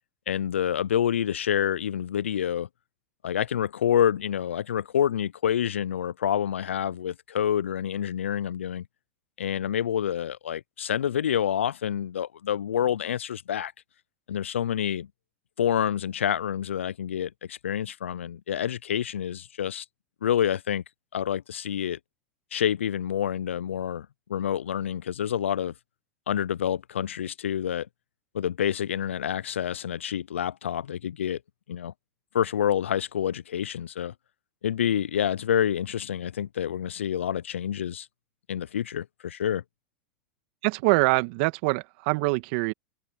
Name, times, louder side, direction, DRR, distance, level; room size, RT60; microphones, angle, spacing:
voice 1, 0.3-2.7 3.2-8.8 9.4-13.7 14.3-15.1 15.6-19.8 20.2-20.8 21.1-22.0 22.5-25.7 26.3-27.9 28.3-31.4 31.7-31.9 32.3-34.1 34.6-38.1 38.5-39.6, left 9 dB, 85° left, 0.4 m, -27 dB
voice 2, 40.6-42.7, right 26 dB, 60° right, 1.6 m, -24 dB
hypercardioid pair, 100°, 7 cm